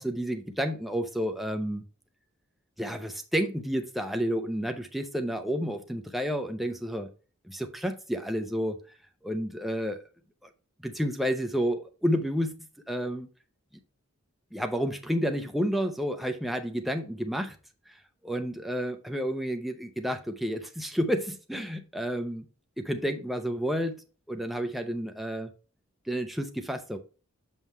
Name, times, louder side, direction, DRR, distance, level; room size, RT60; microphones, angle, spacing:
voice 1, 0.0-1.8 2.8-7.1 7.4-8.8 9.2-10.0 10.4-10.5 10.8-12.5 12.9-13.3 14.5-17.6 17.9-18.0 18.2-22.5 22.8-25.5 26.1-27.0, equal, ahead, 0.6 m, -30 dB
7.0 x 5.5 x 3.0 m
head